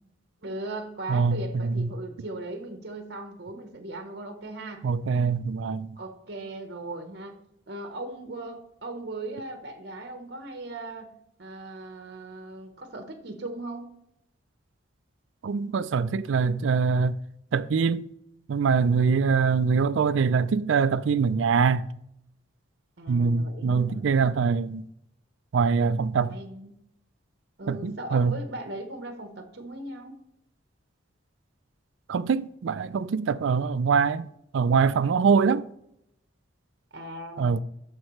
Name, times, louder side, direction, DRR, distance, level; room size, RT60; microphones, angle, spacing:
voice 1, 0.4-4.8 6.0-7.3 7.7-13.9 23.0-24.1 26.3-26.7 27.6-30.2 36.9-37.6, right 2 dB, 55° right, 0.9 m, -38 dB
voice 2, 1.1-1.9 4.8-6.0 15.4-17.2 17.5-18.1 18.5-21.9 23.1-24.8 25.5-26.4 27.7-28.3 32.1-34.3 34.5-35.7 37.4-37.6, right 5 dB, 70° right, 0.4 m, -23 dB
13.0 x 4.4 x 3.1 m
head